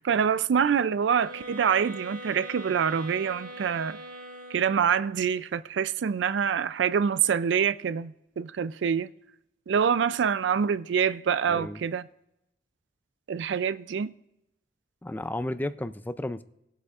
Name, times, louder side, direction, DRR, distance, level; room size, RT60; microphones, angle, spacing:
voice 1, 0.0-4.0 4.5-9.1 9.7-12.1 13.3-14.1, right 7 dB, 85° right, 0.4 m, -26 dB
sound 1, 1.2-5.1, right 1 dB, 55° right, 1.4 m, -42 dB
voice 2, 11.5-11.8 15.0-16.4, left 1 dB, 10° left, 0.4 m, -33 dB
20.5 x 8.1 x 2.4 m
head